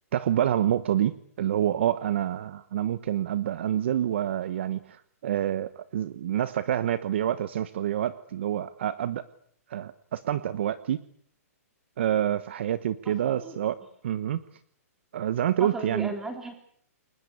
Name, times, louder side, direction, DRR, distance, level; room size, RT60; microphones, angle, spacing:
voice 1, 0.1-9.3 9.7-11.0 12.0-13.8 14.0-14.4 15.1-16.1, right 11 dB, 45° right, 14 dB, 1.2 m, -27 dB
voice 2, 13.1-13.6 15.6-16.6, right 2 dB, 5° right, 5 dB, 3.7 m, -36 dB
29.5 x 22.0 x 8.3 m, 0.63 s
hypercardioid pair, 175°, 8 cm